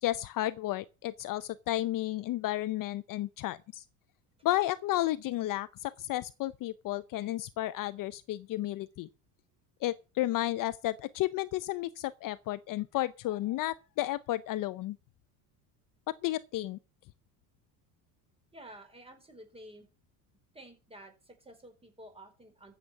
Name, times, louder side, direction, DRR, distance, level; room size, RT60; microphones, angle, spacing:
voice 1, 0.0-3.8 4.4-9.1 9.8-15.0 16.1-16.8, left 15 dB, 45° left, 0.6 m, -32 dB
voice 2, 18.5-19.9 20.5-22.7, right 1 dB, 10° right, 4.9 m, -51 dB
14.0 x 8.0 x 5.9 m
cardioid pair, 125°, 45 cm